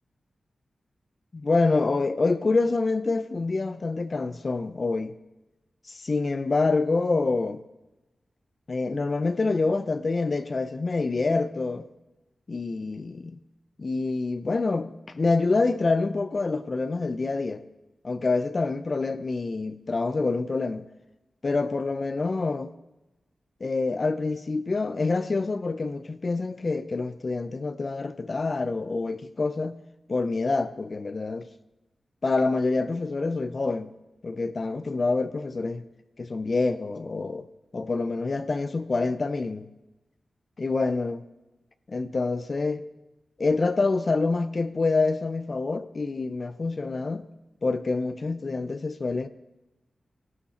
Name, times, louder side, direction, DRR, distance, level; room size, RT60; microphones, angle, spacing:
voice 1, 1.3-5.2 5.9-7.6 8.7-11.9 12.5-13.4 13.8-17.6 18.0-20.8 21.4-22.7 23.6-29.8 30.1-31.5 32.2-33.9 34.2-35.8 36.2-37.5 37.7-39.7 40.6-41.2 41.9-42.8 43.4-47.3 47.6-49.3, left 3 dB, 50° left, 0.7 m, -26 dB
14.5 x 12.5 x 4.4 m
cardioid pair, 55°, 0 cm